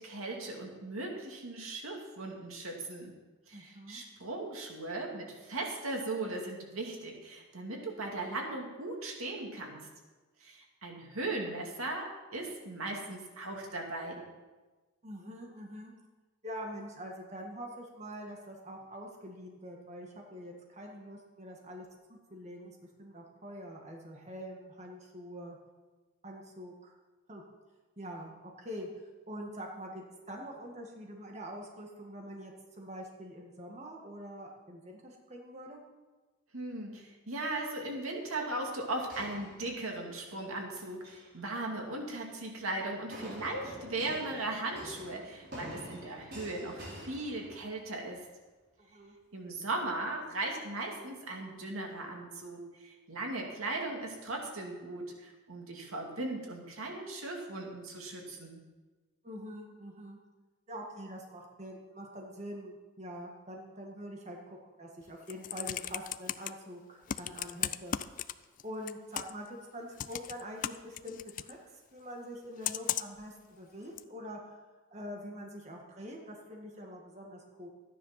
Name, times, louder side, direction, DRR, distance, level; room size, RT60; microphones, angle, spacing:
voice 1, 0.0-3.1 3.5-9.8 10.4-14.2 36.5-48.2 49.3-58.6, right 2 dB, 90° right, 1 dB, 2.4 m, -38 dB
voice 2, 3.5-4.0 15.0-15.9 16.4-25.6 26.2-26.9 27.3-27.4 28.0-28.3 28.6-28.9 29.3-35.8 48.8-49.2 59.2-60.2 60.7-68.0 68.6-71.6 71.9-74.6 74.9-77.7, equal, 30° right, 0 dB, 1.7 m, -45 dB
sound 1, 39.1-40.2 40.9-41.3 43.1-47.9, equal, 50° right, 4.3 m, -47 dB
Computer keyboard, 65.1-66.5 67.1-68.6 68.9-69.5 70.0-71.5 72.6-73.2 74.0-74.1, left 10 dB, 40° left, 0.3 m, -35 dB
13.5 x 9.9 x 5.8 m, 1.3 s
head